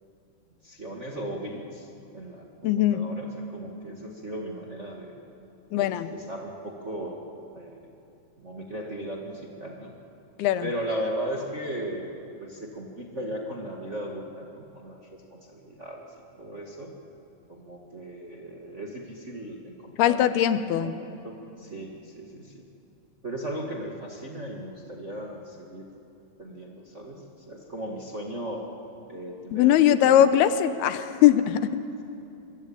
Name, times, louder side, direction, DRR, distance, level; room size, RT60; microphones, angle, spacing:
voice 1, 0.6-1.9 2.1-5.2 5.7-7.8 8.4-10.0 10.6-16.1 16.3-16.9 17.5-20.2 20.5-22.6 23.2-25.9 26.4-28.6 29.1-29.7 30.0-30.2, right 1 dB, 25° right, 0 dB, 1.5 m, -37 dB
voice 2, 2.6-3.0 5.7-6.1 10.4-10.7 20.0-21.0 29.5-31.6, left 11 dB, 90° left, 11 dB, 2.9 m, -20 dB
26.0 x 23.0 x 8.7 m, 2.7 s
omnidirectional pair, 4.4 m